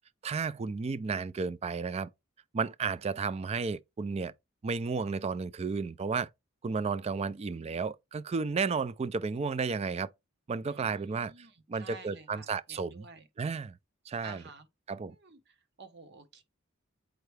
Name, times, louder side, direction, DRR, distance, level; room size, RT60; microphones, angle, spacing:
voice 1, 0.2-2.1 2.5-4.3 4.6-6.3 6.6-10.1 10.5-11.3 11.7-13.1 13.4-13.8 14.1-14.4 14.9-15.2, right 5 dB, 30° right, 0.4 m, -33 dB
voice 2, 10.6-13.3 14.2-14.7 15.1-16.4, right 4 dB, 60° right, 1.2 m, -51 dB
7.9 x 4.6 x 3.3 m
head